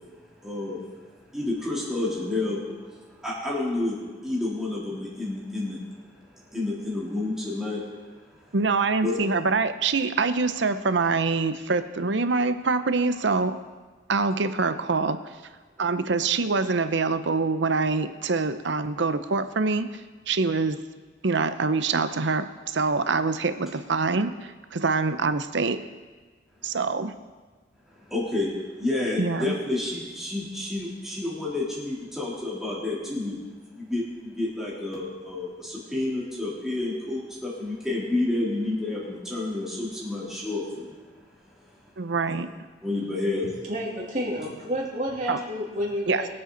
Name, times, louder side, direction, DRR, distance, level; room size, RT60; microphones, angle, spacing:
voice 1, 0.4-0.8 1.3-5.8 6.5-7.9 9.0-9.2 15.8-15.9 26.6-26.8 27.9-41.0 42.8-43.6, left 2 dB, ahead, -7 dB, 3.3 m, -30 dB
voice 2, 8.5-13.6 14.1-15.2 15.8-20.0 20.3-20.8 21.2-25.8 26.6-27.1 29.2-29.5 42.0-42.5 45.3-45.4 46.1-46.2, right 4 dB, 70° right, 11 dB, 0.7 m, -25 dB
voice 3, 43.6-46.3, equal, 40° right, -4 dB, 3.0 m, -30 dB
22.5 x 7.8 x 4.0 m, 1.4 s
head